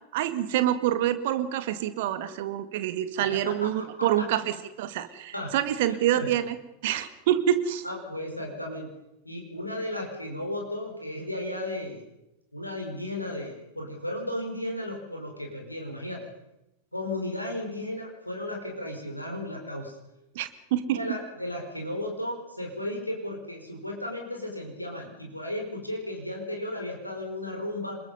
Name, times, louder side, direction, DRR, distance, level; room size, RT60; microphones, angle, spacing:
voice 1, 0.1-4.4 4.8-6.6 6.8-7.8 20.4-21.0, right 11 dB, 50° right, 11 dB, 1.9 m, -26 dB
voice 2, 3.3-4.3 5.3-5.5 6.1-6.3 7.8-8.9 9.2-12.0 12.5-16.2 16.9-20.0 20.8-28.0, left 1 dB, 85° left, 1 dB, 5.0 m, -34 dB
27.0 x 22.0 x 5.6 m, 0.88 s
figure-of-eight pair, 90°, 0 cm